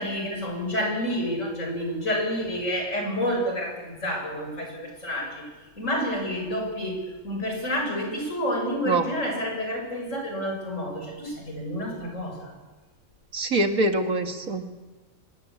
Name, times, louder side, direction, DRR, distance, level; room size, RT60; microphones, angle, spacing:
voice 1, 0.0-5.5 5.8-12.5, equal, 65° left, 2 dB, 7.4 m, -29 dB
voice 2, 13.3-14.7, right 2 dB, 90° right, 5 dB, 2.5 m, -24 dB
24.5 x 22.0 x 8.6 m, 1.2 s
omnidirectional pair, 1.4 m